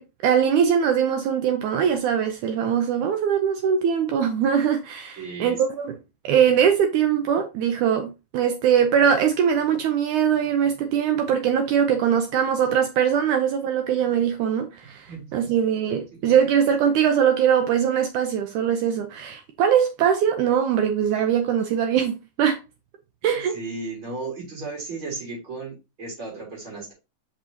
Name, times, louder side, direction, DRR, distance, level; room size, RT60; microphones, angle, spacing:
voice 1, 0.0-6.0 6.2-22.6 23.2-23.6, right 8 dB, 80° right, 1.8 m, -22 dB
voice 2, 5.2-5.6 15.1-15.5 16.2-16.4 23.3-26.9, right 3 dB, 35° right, 4.1 m, -35 dB
6.1 x 5.5 x 2.8 m
omnidirectional pair, 4.2 m